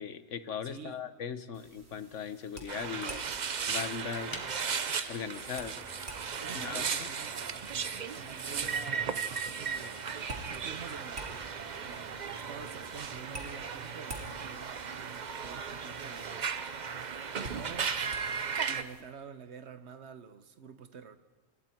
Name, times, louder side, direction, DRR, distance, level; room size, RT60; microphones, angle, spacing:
voice 1, 0.0-3.2 3.7-4.3 5.1-5.8 6.5-7.1, left 7 dB, 65° left, 1.3 m, -39 dB
voice 2, 0.6-1.0 6.4-11.3 11.8-16.5 17.3-18.0 18.7-21.2, right 6 dB, 60° right, 1.3 m, -48 dB
sound 1, 1.5-19.0, right 2 dB, 80° right, 3.5 m, -50 dB
sound 2, 2.7-18.8, right 6 dB, 40° right, 0.7 m, -36 dB
sound 3, 4.3-13.4, equal, 15° left, 2.3 m, -54 dB
29.5 x 25.0 x 4.5 m
omnidirectional pair, 1.4 m